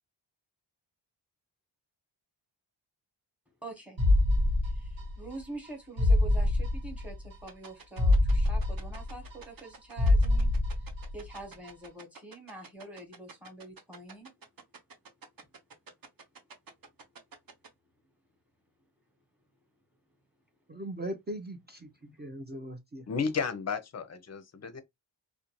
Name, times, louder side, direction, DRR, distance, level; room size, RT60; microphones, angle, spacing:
voice 1, 3.6-4.0 4.6-10.5 10.8-14.3 22.0-22.2, right 2 dB, 5° right, 0.9 m, -45 dB
sound 1, 4.0-5.4 5.6-5.7 6.0-7.4 7.6-7.7 8.0-9.7 10.0-11.4 11.6-11.7, left 1 dB, 75° right, 1.4 m, -25 dB
sound 2, 7.5-17.7, right 5 dB, 50° right, 0.7 m, -48 dB
voice 2, 20.7-23.1, right 1 dB, 25° right, 0.4 m, -40 dB
voice 3, 23.1-24.8, left 5 dB, 35° left, 0.5 m, -33 dB
2.5 x 2.1 x 2.9 m
wide cardioid pair, 125°, 47 cm